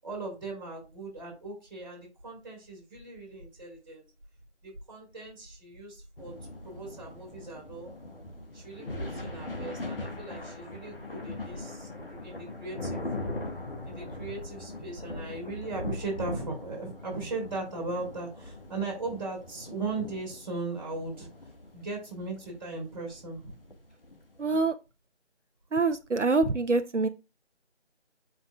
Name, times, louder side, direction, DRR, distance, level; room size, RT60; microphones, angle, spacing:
voice 1, 0.0-4.0 4.6-6.3 6.6-7.9 8.5-13.1 13.8-21.3 21.7-23.6, right 3 dB, 20° right, 5.0 m, -38 dB
sound 1, 6.2-24.7, left 2 dB, 50° left, 1.5 m, -41 dB
voice 2, 24.4-24.7 25.7-27.1, right 3 dB, 85° right, 0.8 m, -25 dB
12.5 x 5.4 x 2.3 m
figure-of-eight pair, 165°, 35 cm